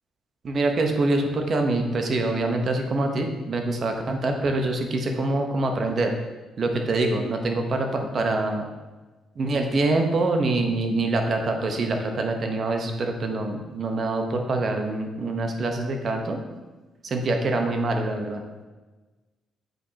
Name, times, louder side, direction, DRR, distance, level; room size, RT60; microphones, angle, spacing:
voice 1, 0.4-6.1 6.6-8.7 9.4-16.4 17.0-18.4, right 2 dB, 50° right, 4 dB, 0.9 m, -25 dB
7.8 x 4.8 x 2.8 m, 1.2 s
cardioid pair, 90°, 0 cm